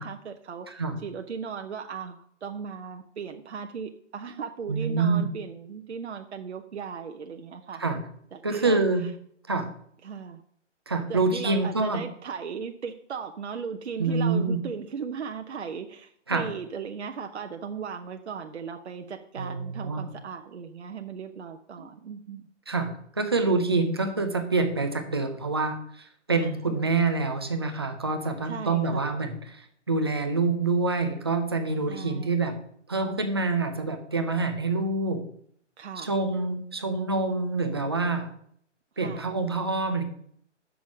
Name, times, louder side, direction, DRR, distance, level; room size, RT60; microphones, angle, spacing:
voice 1, 0.0-7.8 8.3-9.1 10.0-10.4 11.1-22.4 26.4-26.8 28.4-29.2 31.9-32.3 35.8-36.1 39.0-39.3, right 6 dB, 65° right, 5 dB, 0.9 m, -37 dB
voice 2, 0.7-1.0 4.7-5.3 7.8-8.0 8.4-9.0 9.5-9.7 10.9-12.0 14.0-14.6 16.3-16.5 19.4-20.1 22.7-32.6 32.9-35.3 36.0-38.3 39.0-40.0, right 3 dB, 20° right, 6 dB, 0.5 m, -26 dB
6.9 x 6.2 x 6.1 m, 0.64 s
hypercardioid pair, 165°, 36 cm